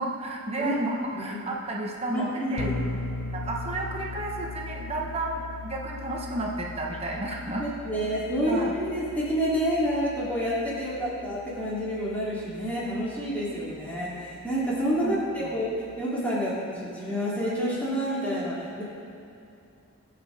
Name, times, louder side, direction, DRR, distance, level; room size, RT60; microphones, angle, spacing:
voice 1, 0.0-2.7 3.3-7.7 8.5-8.7 15.0-15.1 15.4-15.6, right 2 dB, 25° right, -1 dB, 1.0 m, -32 dB
voice 2, 2.1-2.7 7.5-15.7 16.0-18.8, equal, 5° left, -9 dB, 2.9 m, -28 dB
sound 1, 2.6-16.0, left 3 dB, 85° left, 0.6 m, -40 dB
21.0 x 7.7 x 3.5 m, 2.7 s
head